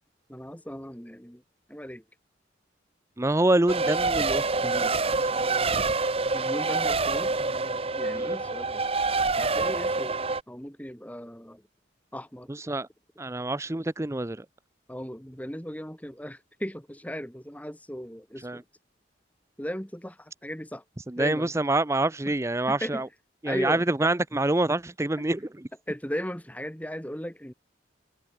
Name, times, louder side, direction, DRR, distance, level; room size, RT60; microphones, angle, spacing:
voice 1, 0.3-1.4 1.7-2.0 6.3-7.3 8.0-8.8 9.4-10.1 10.5-11.6 12.1-12.5 14.9-18.6 19.6-20.8 21.2-21.5 22.7-23.0 23.4-23.8 25.2-25.3 25.9-27.5, equal, 10° left, 3.2 m, -36 dB
voice 2, 3.2-4.9 5.2-5.3 8.1-8.3 12.5-12.9 13.2-14.5 18.4-18.6 21.1-23.1 23.4-25.4, right 2 dB, 15° right, 0.6 m, -26 dB
Race car auto racing, 3.7-10.4, right 3 dB, 30° right, 1.2 m, -26 dB
head